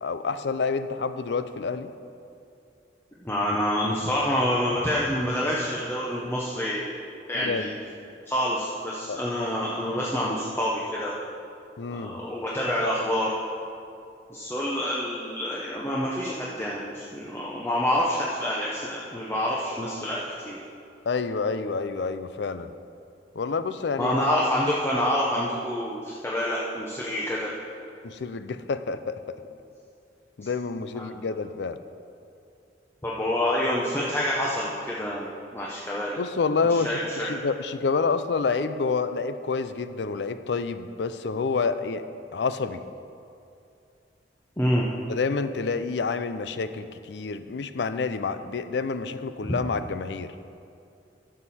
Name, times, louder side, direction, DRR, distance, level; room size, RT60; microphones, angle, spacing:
voice 1, 0.0-1.9 7.3-7.7 9.1-9.2 11.8-12.2 21.1-22.7 23.4-24.3 28.0-29.2 30.4-31.8 36.2-42.0 42.3-42.8 45.1-50.3, left 4 dB, 70° left, 11 dB, 0.5 m, -28 dB
voice 2, 3.2-7.0 7.3-7.7 8.3-11.1 11.9-13.3 14.3-20.6 24.0-27.6 30.9-31.1 33.0-36.2 36.7-37.3 44.6-44.9 49.4-49.6, left 1 dB, 15° left, -5 dB, 0.8 m, -27 dB
12.5 x 7.5 x 4.2 m, 2.5 s
head